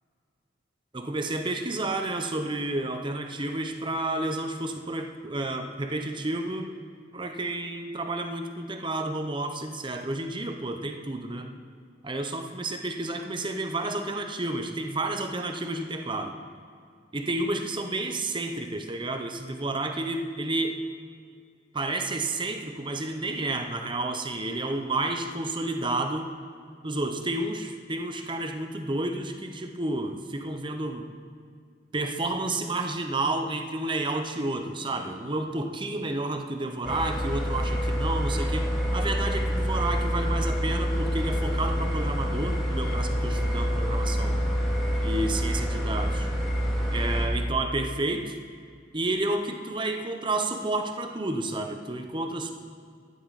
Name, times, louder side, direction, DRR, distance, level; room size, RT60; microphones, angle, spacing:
voice 1, 0.9-6.7 7.1-11.5 12.0-16.3 17.1-20.8 21.7-26.3 26.8-31.1 31.9-44.4 45.0-46.3 46.9-48.4 48.9-52.5, right 2 dB, 25° right, 5 dB, 0.9 m, -30 dB
sound 1, 36.8-47.3, equal, ahead, 2.4 m, -27 dB
14.5 x 11.5 x 4.2 m, 2.2 s
head